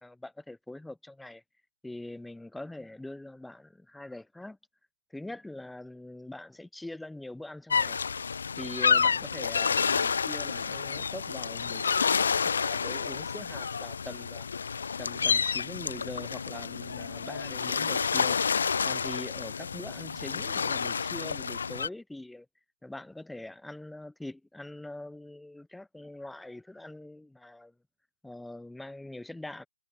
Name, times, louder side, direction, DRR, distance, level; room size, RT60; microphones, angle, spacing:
voice 1, 0.0-1.4 1.8-4.6 5.1-8.0 8.6-14.5 15.0-18.4 18.8-22.5 22.8-27.8 28.2-29.6, left 2 dB, ahead, 0.9 m, -43 dB
sound 1, 7.7-21.9, left 6 dB, 65° left, 0.4 m, -29 dB
hypercardioid pair, 155°, 0 cm